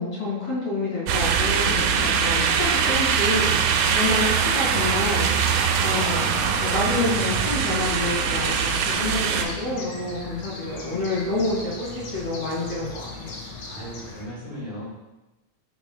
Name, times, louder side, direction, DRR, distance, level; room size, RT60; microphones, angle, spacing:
voice 1, 0.0-3.5 3.9-5.2 5.8-13.4, left 2 dB, 45° left, -9 dB, 2.8 m, -28 dB
sound 1, 1.1-9.4, right 6 dB, 85° right, 2.1 m, -22 dB
sound 2, 3.6-14.3, left 2 dB, 85° left, 3.0 m, -40 dB
sound 3, 3.7-9.0, right 1 dB, 30° right, 0.9 m, -39 dB
voice 2, 13.6-14.9, equal, 50° right, -8 dB, 2.5 m, -37 dB
6.7 x 6.1 x 2.3 m, 1.0 s
omnidirectional pair, 3.7 m